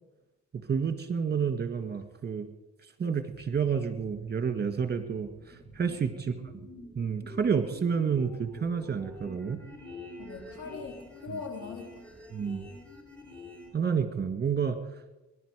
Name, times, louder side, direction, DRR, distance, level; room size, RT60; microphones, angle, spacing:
voice 1, 0.5-2.5 3.0-6.3 6.9-9.6 11.3-11.4 12.3-12.7 13.7-14.8, right 6 dB, 35° right, 8 dB, 2.0 m, -30 dB
sound 1, 3.3-13.7, left 2 dB, 5° left, 4.5 m, -47 dB
voice 2, 10.2-12.0, left 4 dB, 90° left, 3 dB, 3.1 m, -41 dB
19.5 x 11.5 x 5.2 m, 1.1 s
cardioid pair, 90°, 30 cm